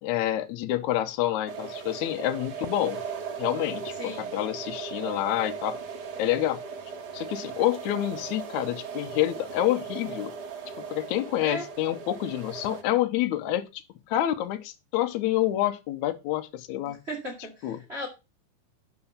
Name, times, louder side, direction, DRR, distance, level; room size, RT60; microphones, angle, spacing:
voice 1, 0.0-3.0 3.4-5.8 6.2-6.6 7.1-10.3 10.8-17.0 17.6-17.8, left 13 dB, 70° left, 1.9 m, -28 dB
sound 1, 1.5-12.8, right 6 dB, 85° right, 0.9 m, -37 dB
voice 2, 4.0-4.3 11.4-11.7 17.1-18.1, equal, 20° right, 1.8 m, -36 dB
11.5 x 5.4 x 5.5 m
omnidirectional pair, 4.1 m